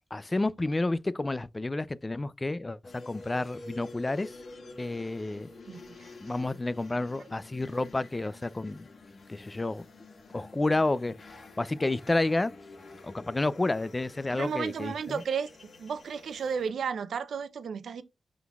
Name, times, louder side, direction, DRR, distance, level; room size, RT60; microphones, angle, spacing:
voice 1, 0.1-4.4 4.8-5.5 6.2-8.9 9.3-9.8 10.3-11.1 11.6-12.5 13.0-15.2, left 2 dB, 25° left, 0.4 m, -30 dB
sound 1, 2.8-16.7, left 2 dB, 60° left, 1.6 m, -49 dB
voice 2, 5.7-6.1 7.2-7.3 14.3-15.5 15.8-18.0, right 6 dB, 85° right, 0.6 m, -33 dB
11.0 x 3.8 x 2.3 m
wide cardioid pair, 105°, 0 cm